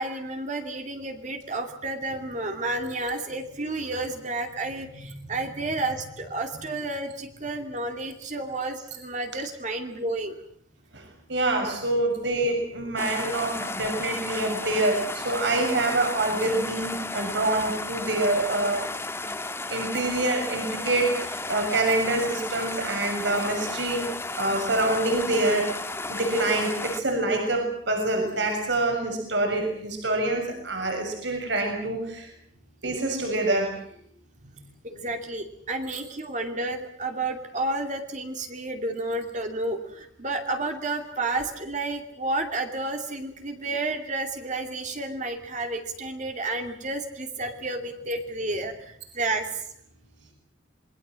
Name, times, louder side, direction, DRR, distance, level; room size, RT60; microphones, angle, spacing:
voice 1, 0.0-10.4 12.4-12.5 14.1-14.2 34.4-49.6, right 2 dB, 40° right, 5 dB, 2.6 m, -31 dB
voice 2, 11.3-18.8 19.7-25.7 26.1-32.3 32.8-33.7, right 2 dB, 60° right, 3 dB, 6.8 m, -26 dB
sound 1, 13.0-27.0, left 2 dB, 15° left, 1.6 m, -34 dB
27.5 x 22.0 x 7.6 m, 0.69 s
head